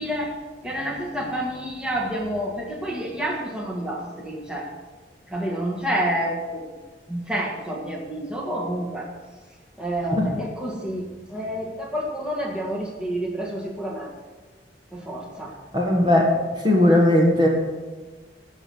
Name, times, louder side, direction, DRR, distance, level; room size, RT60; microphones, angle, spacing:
voice 1, 0.0-4.7 5.3-6.6 7.1-9.1 9.8-14.1 14.9-15.5 16.8-16.9, equal, 5° right, -2 dB, 1.8 m, -29 dB
voice 2, 15.7-16.3 16.6-17.5, left 1 dB, 25° right, -1 dB, 1.7 m, -17 dB
14.0 x 6.3 x 7.1 m, 1.3 s
head